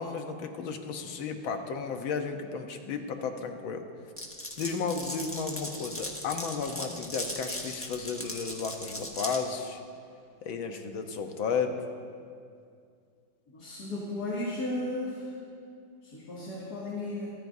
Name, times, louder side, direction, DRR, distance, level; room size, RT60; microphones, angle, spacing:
voice 1, 0.0-3.8 4.6-9.8 10.5-11.8, left 5 dB, 90° left, 5 dB, 1.8 m, -33 dB
Glass, 4.2-9.4, left 1 dB, 10° left, 1.2 m, -38 dB
voice 2, 13.5-15.2 16.1-17.3, left 2 dB, 55° left, -7 dB, 2.9 m, -34 dB
27.0 x 14.0 x 2.7 m, 2.3 s
omnidirectional pair, 2.1 m